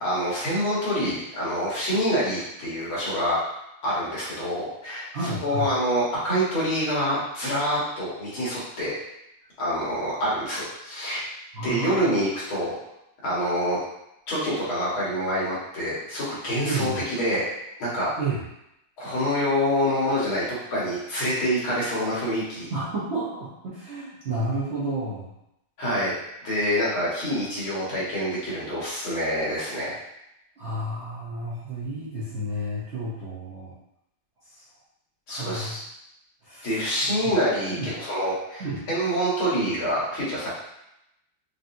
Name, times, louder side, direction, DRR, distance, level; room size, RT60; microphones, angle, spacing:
voice 1, 0.0-5.1 5.4-9.0 9.6-11.2 11.6-12.8 13.2-13.8 14.3-17.5 17.8-18.1 19.0-22.7 25.8-26.2 26.4-30.0 35.3-35.8 36.6-40.5, equal, 70° left, -8 dB, 2.3 m, -26 dB
voice 2, 5.1-5.7 11.5-12.1 16.6-17.0 18.2-18.4 22.7-25.3 30.6-33.7 34.4-34.6 35.3-35.8 36.4-36.8 37.2-37.3 37.7-37.9 38.6-38.8, right 2 dB, 70° right, -7 dB, 0.6 m, -31 dB
5.0 x 2.7 x 2.6 m, 0.83 s
omnidirectional pair, 2.3 m